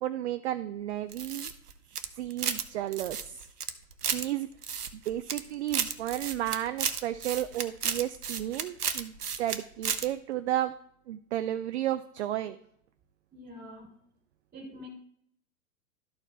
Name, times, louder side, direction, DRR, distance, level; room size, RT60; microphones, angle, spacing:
voice 1, 0.0-1.5 2.2-3.5 4.1-4.5 4.9-10.7 11.1-12.6, right 13 dB, 50° right, 11 dB, 0.4 m, -33 dB
sound 1, 1.1-2.7 2.9-4.3 4.6-5.4 5.7-9.6 9.8-10.1, right 7 dB, 80° right, 0.8 m, -33 dB
voice 2, 13.3-13.9 14.5-14.9, equal, 20° right, 1 dB, 2.7 m, -45 dB
12.5 x 4.5 x 3.4 m, 0.69 s
figure-of-eight pair, 105°, 46 cm